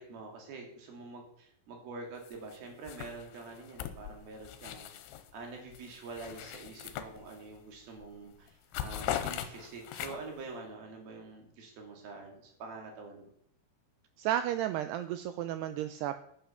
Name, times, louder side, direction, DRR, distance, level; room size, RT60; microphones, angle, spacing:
voice 1, 0.0-8.5 8.8-13.3, right 3 dB, 55° right, 2 dB, 4.2 m, -46 dB
sound 1, 2.2-2.6 2.8-5.3 5.7-7.6 8.0-8.2 8.5-10.4, left 11 dB, 80° left, 3.3 m, -40 dB
voice 2, 14.2-16.2, right 11 dB, 90° right, 10 dB, 2.4 m, -33 dB
11.0 x 9.5 x 5.7 m, 0.69 s
omnidirectional pair, 5.4 m